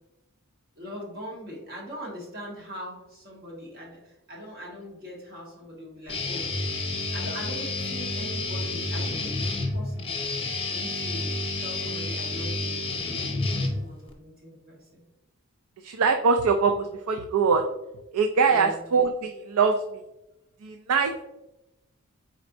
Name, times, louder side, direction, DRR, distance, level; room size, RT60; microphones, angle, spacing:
voice 1, 0.8-6.5 7.1-11.3 11.6-12.7 13.1-15.0 18.5-18.8, equal, 45° right, -3 dB, 1.3 m, -41 dB
Guitar, 6.1-14.1, left 2 dB, 25° left, 0.7 m, -30 dB
voice 2, 15.8-17.6 18.1-19.8 20.6-21.1, right 5 dB, 75° right, 5 dB, 0.4 m, -22 dB
4.3 x 4.1 x 2.6 m, 0.91 s
head